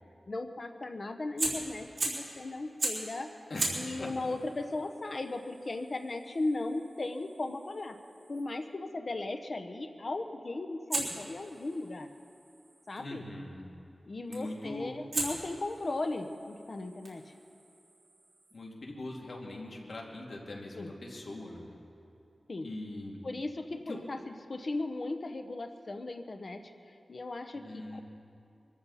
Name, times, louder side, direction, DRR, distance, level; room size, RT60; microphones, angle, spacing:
voice 1, 0.3-3.4 3.7-8.0 8.3-12.1 12.9-13.2 14.1-17.3 20.8-20.9 22.5-22.7 23.2-28.0, left 2 dB, 50° left, 6 dB, 0.9 m, -37 dB
Fire, 1.4-2.3 2.8-3.1 3.5-8.5 10.9-13.0 14.3-14.6 15.1-18.6, right 2 dB, 55° right, 3.7 m, -39 dB
voice 2, 3.5-4.3 13.0-13.6 14.3-14.9 18.5-21.8 22.6-23.2 23.9-24.0 27.5-28.0, left 1 dB, 70° left, -2 dB, 2.5 m, -41 dB
23.5 x 14.0 x 4.2 m, 2.8 s
wide cardioid pair, 100°, 0 cm